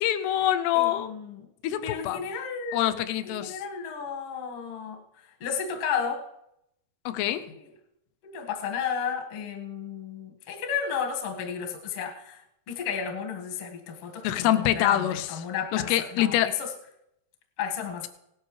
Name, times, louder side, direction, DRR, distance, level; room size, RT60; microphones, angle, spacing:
voice 1, 0.0-1.1 1.6-2.3 2.7-3.6 7.1-7.5 14.2-15.3 15.7-16.5, left 12 dB, 80° left, 11 dB, 2.6 m, -25 dB
voice 2, 0.7-1.4 1.8-2.9 3.2-6.3 8.2-16.7 17.6-18.1, left 7 dB, 55° left, 2 dB, 1.6 m, -33 dB
17.5 x 11.0 x 3.2 m, 0.82 s
omnidirectional pair, 4.9 m